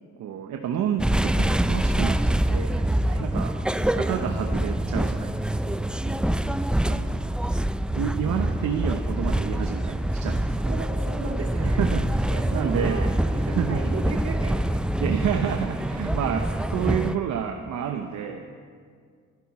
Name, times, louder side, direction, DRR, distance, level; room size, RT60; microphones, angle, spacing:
voice 1, 0.2-2.9 3.2-5.9 6.9-7.2 7.9-10.7 11.6-13.1 13.4-13.8 15.0-18.5, right 8 dB, 70° right, 5 dB, 0.9 m, -30 dB
sound 1, 1.0-17.2, right 1 dB, 5° right, 0.4 m, -25 dB
voice 2, 6.0-6.8 10.7-11.8 12.3-14.8, right 3 dB, 55° right, 1 dB, 2.5 m, -36 dB
23.0 x 10.5 x 4.3 m, 2.1 s
cardioid pair, 90°, 30 cm